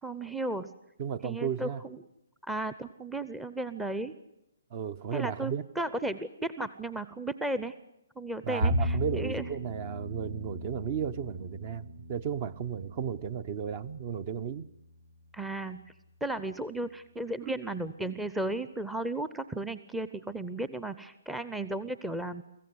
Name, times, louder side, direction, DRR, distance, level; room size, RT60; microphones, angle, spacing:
voice 1, 0.0-0.7 1.2-2.0 2.5-4.1 5.1-7.7 8.2-9.4 15.3-15.8 16.2-22.4, right 1 dB, 5° right, 14 dB, 0.7 m, -34 dB
voice 2, 1.0-1.8 4.7-5.6 8.4-14.7 17.4-17.5, right 8 dB, 35° right, 19 dB, 0.9 m, -34 dB
Bowed string instrument, 8.6-14.9, equal, 75° right, 3.4 m, -36 dB
24.5 x 15.0 x 9.7 m, 0.84 s
figure-of-eight pair, 140°, 0 cm